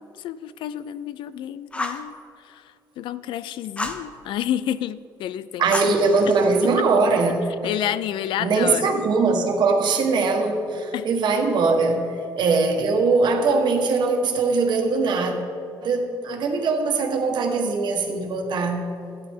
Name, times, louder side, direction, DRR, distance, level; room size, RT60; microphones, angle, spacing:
voice 1, 0.0-2.2 2.5-2.6 3.0-5.9 6.6-6.7 7.6-8.9 10.9-11.1, left 11 dB, 80° left, 15 dB, 0.4 m, -30 dB
Fire, 1.7-2.1 3.8-4.1 5.7-6.6, left 2 dB, 15° left, 0.9 m, -31 dB
voice 2, 5.6-7.7 8.4-12.1 12.4-15.4 15.8-18.8, right 4 dB, 65° right, 3 dB, 1.5 m, -21 dB
13.0 x 9.6 x 3.7 m, 2.6 s
cardioid pair, 105°, 8 cm